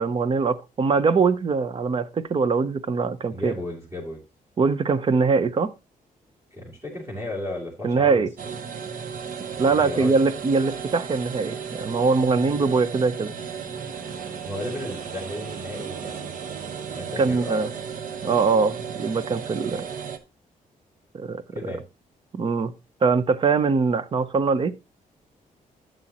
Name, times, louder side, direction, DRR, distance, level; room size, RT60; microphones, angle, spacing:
voice 1, 0.0-3.5 4.6-5.7 7.8-8.3 9.6-13.3 17.2-17.7 18.2-19.9 21.1-21.4 22.3-22.7 23.0-24.7, right 4 dB, 35° right, 0.7 m, -22 dB
voice 2, 3.3-4.2 6.5-8.2 9.6-10.1 14.4-16.3 16.9-17.7 21.5-21.8, left 1 dB, 20° right, 3.0 m, -34 dB
sound 1, 8.4-20.2, right 6 dB, 65° right, 1.1 m, -35 dB
11.5 x 7.7 x 2.9 m
wide cardioid pair, 150°, 15 cm